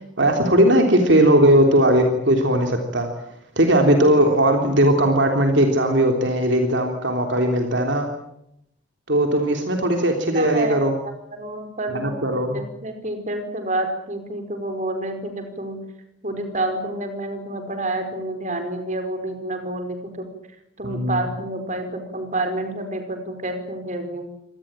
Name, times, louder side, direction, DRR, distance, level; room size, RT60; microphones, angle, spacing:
voice 1, 0.2-3.1 3.5-8.1 9.1-10.9 11.9-12.6 20.8-21.2, right 1 dB, 60° right, 4 dB, 3.4 m, -18 dB
voice 2, 10.3-11.0 11.3-15.8 16.2-20.2 20.8-24.3, right 2 dB, 35° right, 7 dB, 5.0 m, -29 dB
26.0 x 19.0 x 9.1 m, 0.78 s
head